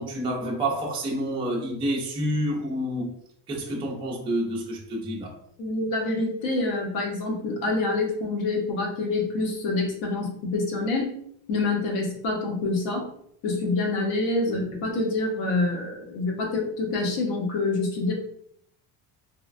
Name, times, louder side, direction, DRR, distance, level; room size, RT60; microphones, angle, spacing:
voice 1, 0.0-3.1 3.5-5.4 14.4-14.5, right 1 dB, 15° right, -3 dB, 0.4 m, -28 dB
voice 2, 5.6-11.2 11.5-13.1 13.4-18.1, left 2 dB, 85° left, 1 dB, 0.9 m, -26 dB
3.2 x 2.1 x 2.4 m, 0.68 s
cardioid pair, 155°, 43 cm